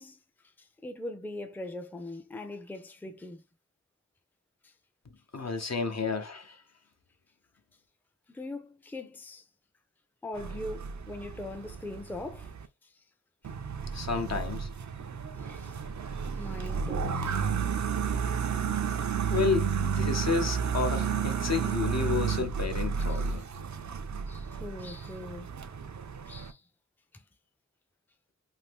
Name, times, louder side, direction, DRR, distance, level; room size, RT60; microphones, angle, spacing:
voice 1, 0.0-3.4 4.6-4.7 8.3-9.5 10.2-12.5 12.8-13.0 13.9-14.0 15.4-15.8 16.3-17.7 23.1-23.2 24.3-25.5 26.3-26.6 27.1-27.2, left 2 dB, 5° left, 0.4 m, -41 dB
voice 2, 5.3-6.6 13.9-14.7 19.3-23.4, left 5 dB, 60° left, 0.7 m, -31 dB
sound 1, 10.4-12.7 13.4-26.5, right 6 dB, 70° right, 0.4 m, -32 dB
2.6 x 2.5 x 3.4 m
wide cardioid pair, 50°, 30 cm